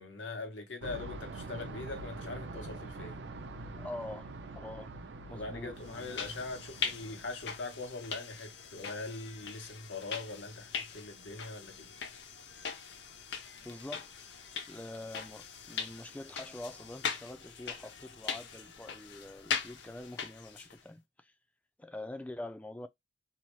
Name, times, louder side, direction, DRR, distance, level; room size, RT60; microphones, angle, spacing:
voice 1, 0.0-3.2 5.2-11.9, left 3 dB, 90° left, 0.9 m, -42 dB
sound 1, 0.8-7.6, right 2 dB, 70° right, 0.5 m, -45 dB
voice 2, 3.8-4.9 5.2-6.2 13.6-14.4 14.7-21.3 21.8-22.9, left 1 dB, 10° left, 0.3 m, -45 dB
sound 2, 5.8-20.8, left 6 dB, 70° left, 0.6 m, -41 dB
2.7 x 2.0 x 3.0 m
head